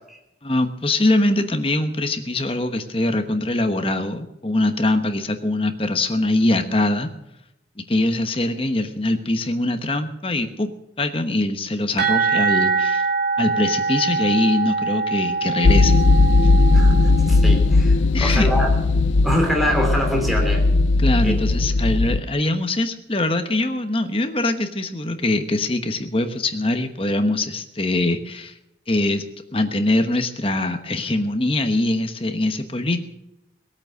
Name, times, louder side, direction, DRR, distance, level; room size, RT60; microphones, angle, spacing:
voice 1, 0.4-7.1 7.9-10.7 11.0-13.0 13.4-16.3 18.1-18.5 21.0-28.5 28.9-29.2 29.5-33.0, left 2 dB, 30° left, 7 dB, 1.1 m, -22 dB
sound 1, 12.0-17.6, right 4 dB, 55° right, 3.6 m, -23 dB
sound 2, 15.6-22.2, left 3 dB, 90° left, 0.6 m, -17 dB
voice 2, 16.7-18.8 19.2-20.6 21.2-21.4, equal, ahead, 1 dB, 2.8 m, -24 dB
19.0 x 8.8 x 6.6 m, 0.88 s
head